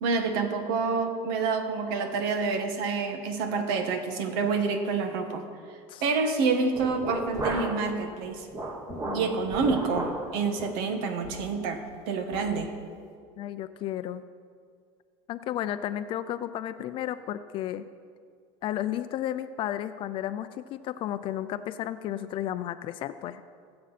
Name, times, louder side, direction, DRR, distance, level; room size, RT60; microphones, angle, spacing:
voice 1, 0.0-5.4 6.0-8.5 9.1-12.7, right 4 dB, 80° right, 6 dB, 1.5 m, -28 dB
sound 1, 6.7-7.9 8.2-10.3 10.6-10.8 11.2-11.5 11.9-12.0 12.3-12.5, right 2 dB, 25° right, 1.5 m, -34 dB
voice 2, 8.9-9.4 13.4-14.2 15.3-17.8 18.6-23.4, left 12 dB, 45° left, 12 dB, 0.4 m, -33 dB
20.0 x 7.7 x 4.2 m, 2.1 s
cardioid pair, 145°, 12 cm